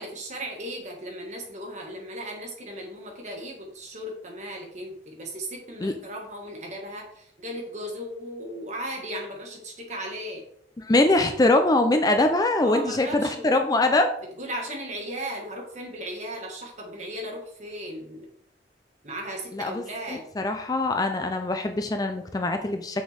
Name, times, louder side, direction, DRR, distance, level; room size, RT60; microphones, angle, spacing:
voice 1, 0.0-10.4 12.6-13.5 14.3-18.3 19.0-20.3, right 1 dB, 40° right, 1 dB, 1.6 m, -36 dB
voice 2, 10.9-14.1 19.5-19.8 20.1-23.0, left 2 dB, 20° left, 6 dB, 0.4 m, -23 dB
6.1 x 6.0 x 3.4 m, 0.69 s
head